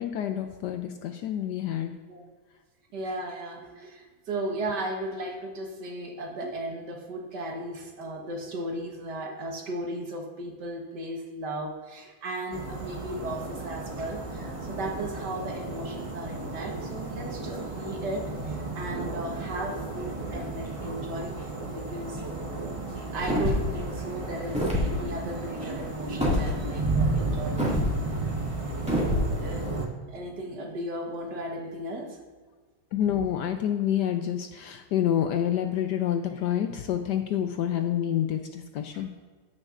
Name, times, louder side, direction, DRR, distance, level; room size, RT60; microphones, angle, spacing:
voice 1, 0.0-1.9 32.9-39.1, left 10 dB, 75° left, 6 dB, 1.0 m, -28 dB
voice 2, 2.9-21.4 21.7-22.2 23.1-28.3 28.6-28.7 29.4-29.7 30.1-32.2 38.9-39.0, right 1 dB, 60° right, 1 dB, 1.7 m, -36 dB
sound 1, 12.5-29.9, right 3 dB, 30° right, 0.6 m, -33 dB
sound 2, 23.2-23.7 24.5-24.9 26.2-26.4 27.6-27.9 28.9-29.3, left 1 dB, 5° right, 1.9 m, -25 dB
14.5 x 6.4 x 2.5 m, 1.4 s
omnidirectional pair, 2.1 m